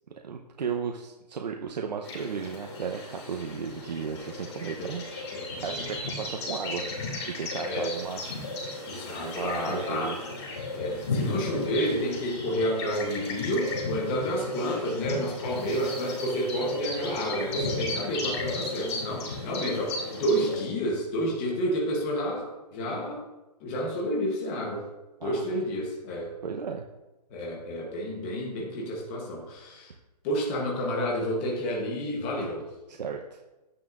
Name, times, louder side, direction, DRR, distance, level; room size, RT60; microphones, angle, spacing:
voice 1, 0.2-5.0 5.6-6.9 7.4-8.2 9.1-10.2 25.2-25.5 26.4-26.8 32.9-33.4, right 6 dB, 85° right, 2 dB, 0.9 m, -34 dB
sound 1, 2.0-20.6, left 3 dB, 40° left, 2.8 m, -35 dB
voice 2, 5.3-5.9 7.7-7.9 8.8-10.2 10.7-23.2 23.6-24.9 25.2-26.3 27.3-29.9 30.2-32.6, equal, 15° left, -2 dB, 1.1 m, -30 dB
11.0 x 9.7 x 2.6 m, 1.1 s
hypercardioid pair, 175°, 21 cm